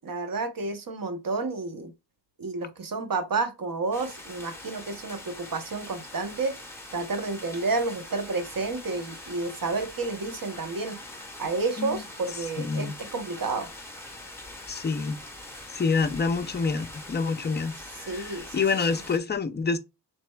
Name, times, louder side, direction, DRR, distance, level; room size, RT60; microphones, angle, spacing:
voice 1, 0.0-1.9 2.4-6.6 6.9-11.0 11.4-13.7 18.1-18.6 18.9-19.0, right 3 dB, 50° right, 0.8 m, -30 dB
sound 1, 3.9-19.2, left 1 dB, 5° left, 0.9 m, -43 dB
voice 2, 12.6-13.0 14.7-15.2 15.7-19.8, left 4 dB, 25° left, 0.4 m, -27 dB
6.2 x 3.3 x 2.2 m
wide cardioid pair, 170°, 43 cm